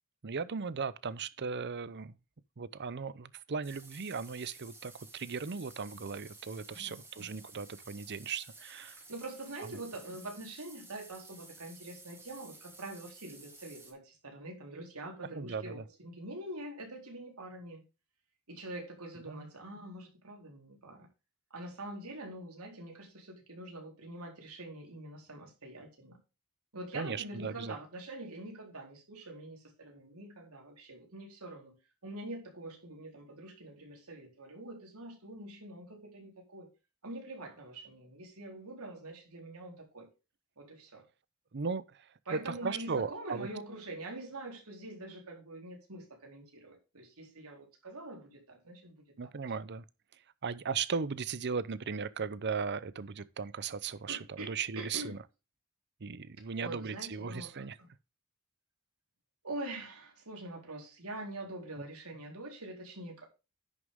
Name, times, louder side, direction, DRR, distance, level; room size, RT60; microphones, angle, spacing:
voice 1, 0.2-2.2 2.6-9.0 15.3-15.8 19.3-19.5 26.9-27.8 41.5-43.5 49.2-49.8 50.4-55.2 56.0-57.8, right 5 dB, 50° right, 0.7 m, -37 dB
sound 1, 3.6-13.9, right 3 dB, 10° right, 2.5 m, -54 dB
voice 2, 6.8-7.4 9.1-17.8 18.5-21.1 21.5-26.2 26.7-31.8 32.0-36.7 37.0-40.1 40.6-41.1 42.3-49.0 54.1-55.2 56.6-57.7 59.4-63.2, right 2 dB, 85° right, 4.1 m, -45 dB
10.5 x 6.6 x 3.6 m
head